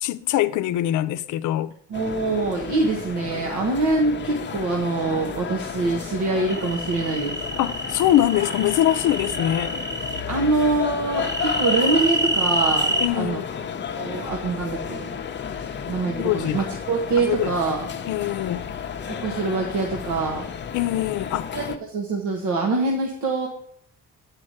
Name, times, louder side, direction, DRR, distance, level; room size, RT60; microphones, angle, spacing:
voice 1, 0.0-1.7 7.6-9.8 13.0-13.5 16.1-16.7 17.2-17.5 18.1-18.6 20.7-21.5, left 13 dB, 80° left, 0.5 m, -23 dB
sound 1, 1.9-21.8, left 7 dB, 35° left, 0.7 m, -32 dB
voice 2, 1.9-7.4 10.3-13.4 14.0-15.2 15.9-17.9 19.2-20.4 21.5-23.5, right 3 dB, 80° right, 1.3 m, -24 dB
sound 2, 6.5-10.2 11.1-13.1, right 1 dB, 10° right, 0.9 m, -27 dB
8.6 x 4.8 x 6.4 m
cardioid pair, 90°, 30 cm